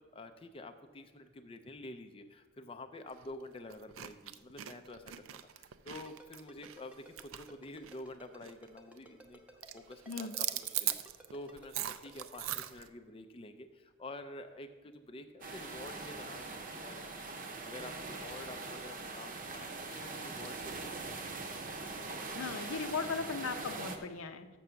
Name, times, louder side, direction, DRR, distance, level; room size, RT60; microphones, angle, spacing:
voice 1, 0.0-20.7 21.0-21.3, left 2 dB, 25° left, 7 dB, 0.4 m, -49 dB
sound 1, 3.1-3.3 3.7-8.1 8.4-8.7 9.0-9.3 9.6-12.9, right 13 dB, 70° right, 0.4 m, -40 dB
Ringtone, 5.9-12.7, right 1 dB, 5° right, 0.8 m, -55 dB
sound 2, 15.4-24.0, right 3 dB, 40° right, 0.7 m, -42 dB
voice 2, 22.3-24.5, left 4 dB, 85° left, 8 dB, 0.7 m, -37 dB
6.8 x 6.1 x 6.8 m, 1.4 s
head